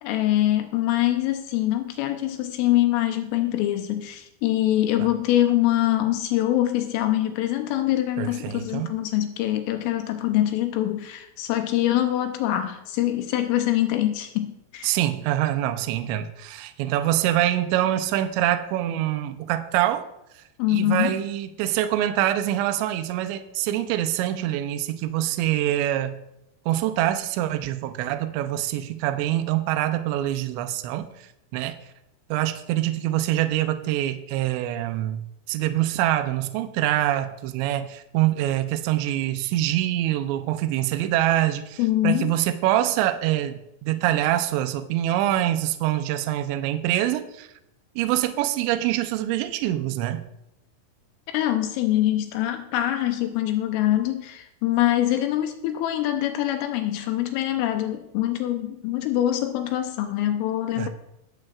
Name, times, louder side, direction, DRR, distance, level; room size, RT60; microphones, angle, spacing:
voice 1, 0.0-15.0 20.6-21.2 41.8-42.4 51.3-60.9, left 13 dB, 80° left, 6 dB, 3.2 m, -24 dB
voice 2, 8.2-9.0 14.8-20.1 20.7-26.2 26.7-31.3 31.5-31.8 32.3-47.5 48.0-50.3 60.8-60.9, right 13 dB, 85° right, 8 dB, 2.6 m, -25 dB
21.5 x 7.6 x 2.4 m, 0.87 s
omnidirectional pair, 5.8 m